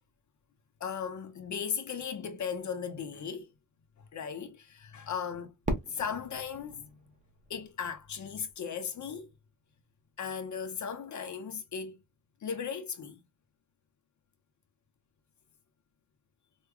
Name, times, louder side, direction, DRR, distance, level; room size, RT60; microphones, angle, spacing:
voice 1, 0.8-3.5 4.0-5.5 5.9-6.9 7.5-9.3 10.2-12.0 12.4-13.2, left 7 dB, 55° left, 0.7 m, -37 dB
Fireworks, 5.7-8.5, right 1 dB, 20° right, 1.0 m, -38 dB
4.7 x 2.3 x 2.3 m
wide cardioid pair, 135°, 34 cm